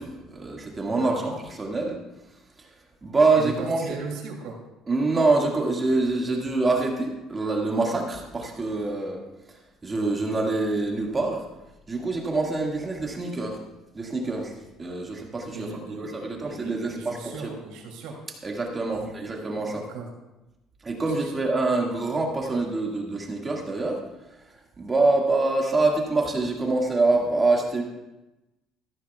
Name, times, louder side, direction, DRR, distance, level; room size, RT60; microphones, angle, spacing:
voice 1, 0.0-2.0 2.6-2.7 3.0-4.0 4.9-9.2 9.8-11.4 11.9-13.6 13.9-14.5 14.8-17.5 18.4-19.8 20.8-24.0 24.8-27.8, right 3 dB, 20° right, 0 dB, 1.9 m, -25 dB
voice 2, 0.9-1.3 3.4-4.6 15.5-16.1 16.4-18.2 18.9-20.1 21.0-21.3, right 4 dB, 85° right, 0 dB, 2.8 m, -38 dB
14.0 x 13.0 x 2.4 m, 0.99 s
cardioid pair, 135°, 0 cm